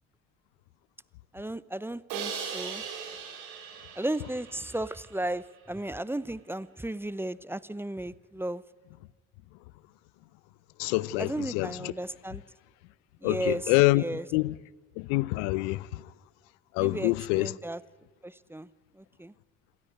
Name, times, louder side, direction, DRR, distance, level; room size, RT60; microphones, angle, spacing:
voice 1, 1.3-2.8 4.0-8.6 11.2-12.4 13.2-14.2 16.8-17.8 18.2-18.7 18.9-19.3, right 1 dB, 5° right, 0.7 m, -35 dB
Crash cymbal, 2.1-5.2, right 6 dB, 70° right, 4.3 m, -39 dB
voice 2, 10.8-11.9 13.2-14.0 14.3-14.5 15.0-16.0 16.7-17.5, left 21 dB, 70° left, 0.7 m, -26 dB
27.0 x 13.0 x 9.5 m
hypercardioid pair, 55°, 37 cm